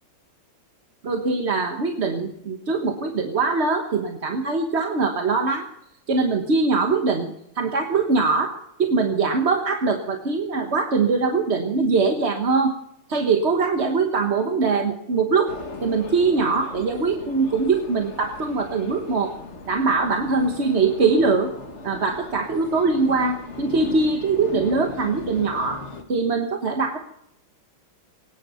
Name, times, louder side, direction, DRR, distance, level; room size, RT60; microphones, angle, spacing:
voice 1, 1.0-5.7 6.1-12.7 13.1-15.5 15.8-19.4 19.7-21.5 21.8-25.8 26.1-27.0, right 4 dB, 35° right, 3 dB, 1.3 m, -22 dB
sound 1, 15.5-26.0, left 3 dB, 35° left, 1.7 m, -38 dB
23.5 x 10.0 x 5.7 m, 0.77 s
omnidirectional pair, 2.4 m